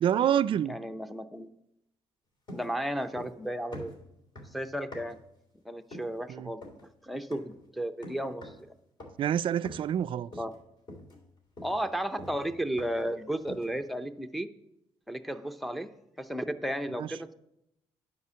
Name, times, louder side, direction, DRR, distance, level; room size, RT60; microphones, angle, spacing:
voice 1, 0.0-0.8 6.3-6.5 9.2-10.3 17.0-17.1, right 10 dB, 55° right, 0.4 m, -27 dB
voice 2, 0.7-1.5 2.5-3.9 4.5-5.2 5.6-6.6 7.0-8.6 10.4-10.5 11.6-14.5 15.1-15.9 16.2-17.3, right 1 dB, ahead, 0.6 m, -34 dB
sound 1, 2.5-3.4 3.7-5.3 5.9-6.2 6.6-6.9 7.3-7.6 8.0-8.7 9.0-9.3 9.6-10.0 10.3-10.6 10.9-13.1 13.5-13.8, left 1 dB, 45° left, 3.2 m, -46 dB
9.5 x 5.0 x 6.9 m
cardioid pair, 95°, 11 cm